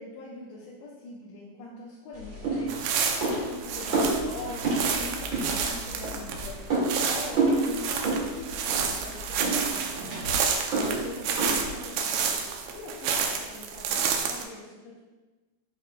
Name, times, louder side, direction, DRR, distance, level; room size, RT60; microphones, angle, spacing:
voice 1, 0.0-15.0, left 2 dB, 80° left, -5 dB, 3.1 m, -43 dB
sound 1, 2.1-11.9, right 2 dB, 40° right, 2.0 m, -30 dB
sound 2, 2.7-14.4, right 6 dB, 80° right, 2.1 m, -30 dB
12.5 x 5.5 x 2.3 m, 1.2 s
omnidirectional pair, 5.1 m